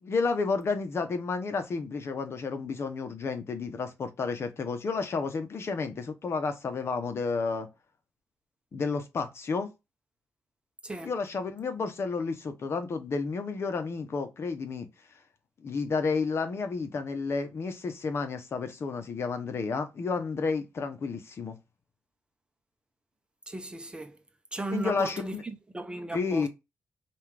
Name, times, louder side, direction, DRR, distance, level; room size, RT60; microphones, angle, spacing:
voice 1, 0.0-7.7 8.7-9.7 11.0-14.9 15.6-21.6 24.7-25.4 26.1-26.5, left 4 dB, 50° left, 0.9 m, -31 dB
voice 2, 23.5-24.2 24.5-26.5, right 2 dB, 15° right, 0.7 m, -36 dB
5.4 x 2.5 x 3.3 m
cardioid pair, 100°, 5 cm